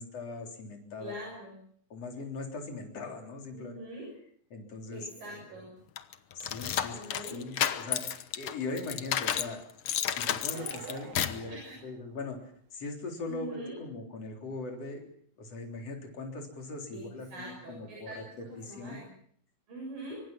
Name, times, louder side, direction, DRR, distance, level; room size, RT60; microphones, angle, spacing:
voice 1, 0.0-1.2 1.9-3.8 4.5-5.6 6.3-7.0 7.3-9.6 10.1-12.4 12.7-15.1 15.4-19.0, left 3 dB, 45° left, 2 dB, 4.7 m, -40 dB
voice 2, 1.0-1.6 3.5-4.1 4.9-5.7 6.9-7.4 11.5-11.8 13.3-13.8 16.9-17.0 17.3-19.1 19.7-20.2, right 1 dB, 70° right, -1 dB, 9.1 m, -43 dB
sound 1, 6.0-9.5 9.9-11.5, left 9 dB, 75° left, 1.3 m, -31 dB
sound 2, 10.4-12.5, right 7 dB, 85° right, 3.7 m, -47 dB
25.0 x 24.5 x 6.0 m, 0.62 s
omnidirectional pair, 4.2 m